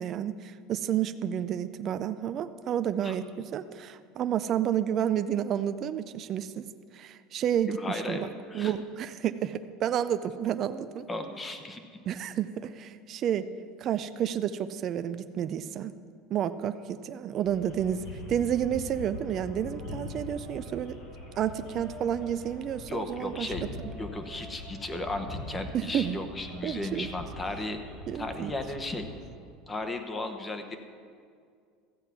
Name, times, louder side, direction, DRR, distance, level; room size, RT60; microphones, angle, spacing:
voice 1, 0.0-6.6 6.9-8.3 8.5-11.0 12.1-13.4 13.8-15.9 16.3-18.0 18.3-21.0 21.4-23.5 25.7-26.2 26.6-27.1 28.1-28.5, right 9 dB, 40° right, 11 dB, 0.4 m, -30 dB
voice 2, 7.7-8.7 11.1-11.8 22.9-23.6 24.0-27.8 28.2-29.1 29.7-30.8, left 2 dB, 20° left, 7 dB, 1.0 m, -35 dB
sound 1, 17.4-29.2, left 1 dB, 60° left, 3.5 m, -43 dB
14.0 x 7.8 x 5.9 m, 2.2 s
supercardioid pair, 130°, 0 cm